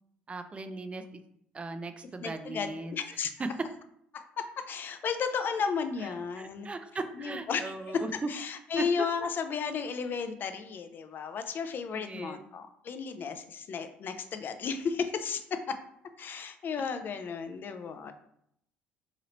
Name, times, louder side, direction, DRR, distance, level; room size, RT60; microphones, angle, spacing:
voice 1, 0.3-1.0 1.5-2.9 6.0-8.3 8.8-9.1 11.9-12.4, right 3 dB, 25° right, 8 dB, 0.4 m, -38 dB
voice 2, 2.2-3.3 4.1-6.7 7.1-15.8 16.2-18.1, left 6 dB, 45° left, 8 dB, 0.4 m, -34 dB
2.9 x 2.8 x 2.9 m, 0.72 s
hypercardioid pair, 60°, 5 cm